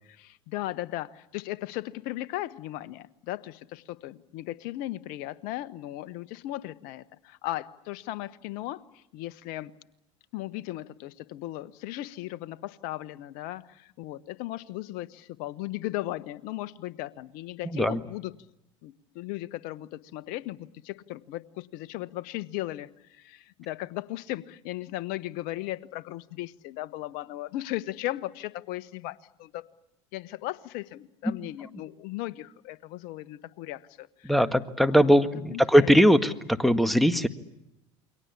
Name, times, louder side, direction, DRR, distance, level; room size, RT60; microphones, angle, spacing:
voice 1, 0.1-9.7 10.3-18.3 18.8-29.7 30.1-34.3 34.8-35.0 35.5-35.9, left 16 dB, 65° left, 1.2 m, -37 dB
voice 2, 17.6-18.0 31.2-31.3 34.2-37.3, equal, ahead, 1.8 m, -21 dB
29.0 x 23.0 x 8.4 m
hypercardioid pair, 80°, 16 cm